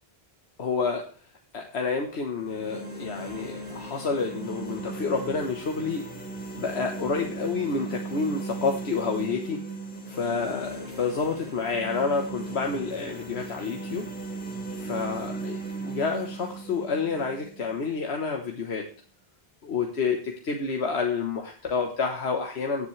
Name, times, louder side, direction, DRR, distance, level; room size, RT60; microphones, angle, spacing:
voice 1, 0.6-1.0 1.5-6.0 6.5-9.6 10.1-14.1 14.8-18.9 19.6-22.9, left 4 dB, 85° left, 3 dB, 1.4 m, -29 dB
sound 1, 2.3-18.3, right 3 dB, 10° left, 3.0 m, -37 dB
18.0 x 7.3 x 3.2 m, 0.39 s
omnidirectional pair, 1.1 m